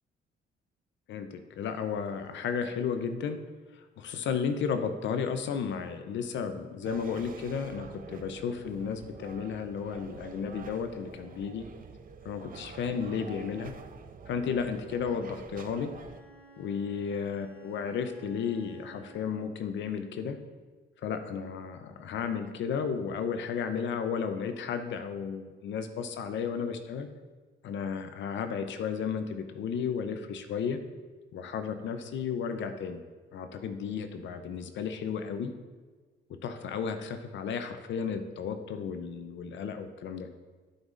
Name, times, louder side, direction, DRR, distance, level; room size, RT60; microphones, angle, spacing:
voice 1, 1.1-3.4 3.7-11.6 12.2-13.7 14.3-15.9 16.6-20.4 21.0-27.1 27.6-30.8 31.3-33.0 33.3-35.5 36.4-40.3, left 6 dB, 70° left, 8 dB, 0.7 m, -33 dB
sound 1, 6.8-16.2, right 6 dB, 45° right, 0.6 m, -47 dB
Bowed string instrument, 15.8-19.6, right 4 dB, 10° left, 2.3 m, -55 dB
11.5 x 5.5 x 2.5 m, 1.4 s
cardioid pair, 90°, 20 cm